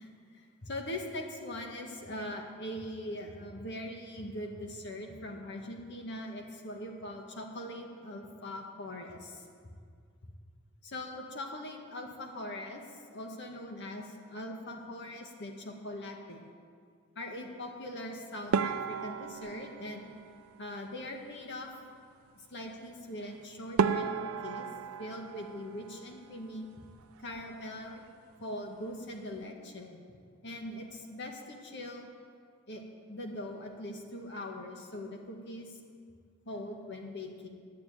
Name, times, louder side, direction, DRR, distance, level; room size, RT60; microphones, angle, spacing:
voice 1, 0.0-9.8 10.8-12.8 13.1-16.4 17.2-20.1 20.6-21.7 22.5-24.7 25.0-26.7 27.2-28.0 28.4-30.0 30.4-32.1 32.7-32.8 33.1-35.8 36.5-37.5, left 1 dB, 55° left, 2 dB, 1.8 m, -41 dB
sound 1, 18.5-21.0 23.2-23.3 23.8-26.5 26.8-27.6 27.9-28.1 28.4-28.5 29.1-29.4, right 6 dB, 85° right, 0.4 m, -34 dB
11.5 x 9.1 x 9.2 m, 2.2 s
head